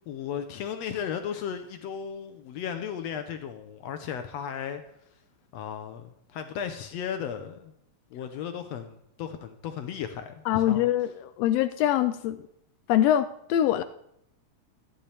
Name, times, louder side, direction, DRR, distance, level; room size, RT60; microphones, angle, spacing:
voice 1, 0.1-4.8 5.1-5.2 5.5-7.7 8.1-10.9, left 8 dB, 75° left, 7 dB, 1.7 m, -35 dB
voice 2, 10.5-12.4 12.9-13.8, left 11 dB, 90° left, 11 dB, 1.4 m, -24 dB
14.0 x 10.0 x 3.3 m, 0.73 s
omnidirectional pair, 3.5 m